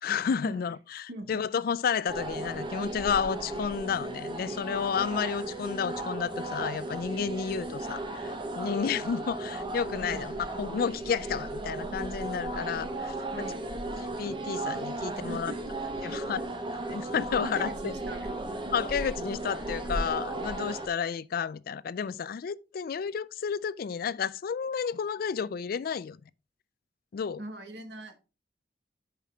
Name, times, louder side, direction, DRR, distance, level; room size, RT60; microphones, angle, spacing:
voice 1, 0.0-13.2 14.0-15.5 16.0-16.4 16.9-17.9 18.7-26.2 27.1-27.4, left 6 dB, 55° left, 0.3 m, -31 dB
voice 2, 1.1-1.4 10.0-10.3 13.3-13.7 15.1-15.6 16.1-16.4 16.9-17.0 17.4-18.4 18.6-18.7 27.4-28.1, right 1 dB, 75° right, 1.6 m, -41 dB
sound 1, 2.1-20.9, right 2 dB, 30° right, 1.2 m, -35 dB
7.3 x 5.9 x 3.5 m
head